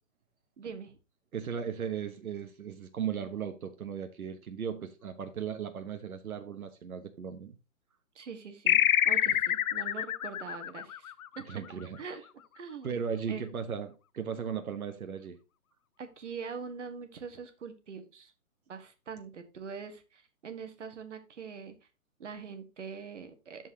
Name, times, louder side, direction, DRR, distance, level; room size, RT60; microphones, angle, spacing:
voice 1, 0.6-1.0 8.1-11.4 12.0-12.2 12.5-13.0 13.3-13.6 16.0-18.3 18.7-21.7 22.2-23.7, right 6 dB, 55° right, 1.6 m, -43 dB
voice 2, 1.3-7.5 11.5-12.0 12.8-15.4, right 7 dB, 80° right, 1.2 m, -37 dB
sound 1, 8.7-11.7, left 11 dB, 75° left, 0.6 m, -27 dB
13.5 x 4.6 x 2.8 m
hypercardioid pair, 175°, 42 cm